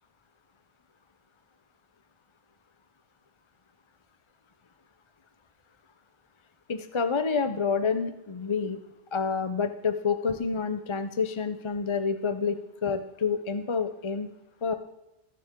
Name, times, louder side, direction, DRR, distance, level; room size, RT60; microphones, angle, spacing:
voice 1, 6.7-8.8 9.1-14.3 14.6-14.7, left 5 dB, 35° left, 9 dB, 0.5 m, -28 dB
20.5 x 7.1 x 3.7 m, 0.93 s
omnidirectional pair, 1.2 m